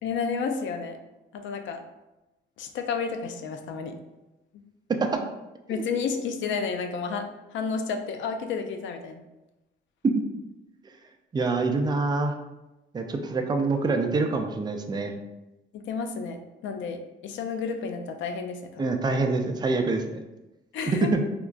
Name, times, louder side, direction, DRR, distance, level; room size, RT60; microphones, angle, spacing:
voice 1, 0.0-1.0 1.3-1.8 2.6-4.0 5.7-9.2 15.7-18.9 20.7-21.1, left 5 dB, 75° left, 6 dB, 0.4 m, -31 dB
voice 2, 11.3-12.3 12.9-15.1 18.8-20.2 20.9-21.2, right 3 dB, 20° right, 5 dB, 0.4 m, -25 dB
3.6 x 2.4 x 2.2 m, 1.0 s
cardioid pair, 90°, 20 cm